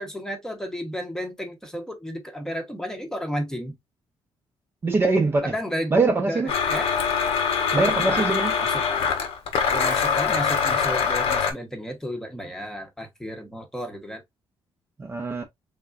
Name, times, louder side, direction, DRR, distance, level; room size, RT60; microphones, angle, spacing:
voice 1, 0.0-3.8 5.4-6.0 6.3-6.4 6.7-6.9 7.9-8.3 8.6-8.9 9.7-14.2, equal, 5° left, 0.9 m, -32 dB
voice 2, 4.8-5.5 5.9-6.5 7.7-8.5 15.0-15.4, right 3 dB, 25° right, 0.6 m, -22 dB
Domestic sounds home sounds, 6.5-11.5, left 6 dB, 75° left, 1.0 m, -23 dB
4.4 x 3.5 x 2.4 m
cardioid pair, 170°, 10 cm